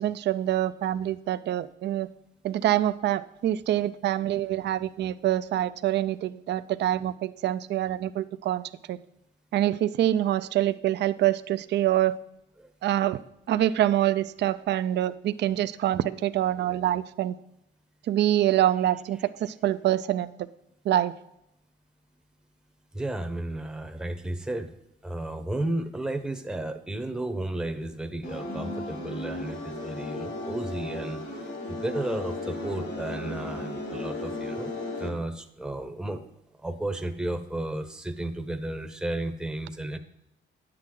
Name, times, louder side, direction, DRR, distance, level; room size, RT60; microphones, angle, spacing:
voice 1, 0.0-2.1 2.4-8.6 8.9-9.0 9.5-12.2 12.8-13.2 13.5-17.3 18.1-20.3 20.9-21.2, right 12 dB, 60° right, 14 dB, 0.4 m, -25 dB
voice 2, 22.9-24.7 25.0-36.2 36.6-40.0, right 1 dB, 5° right, 7 dB, 0.8 m, -33 dB
sound 1, 28.2-35.1, left 2 dB, 60° left, 2.2 m, -35 dB
9.6 x 7.7 x 3.8 m, 0.82 s
cardioid pair, 90°, 20 cm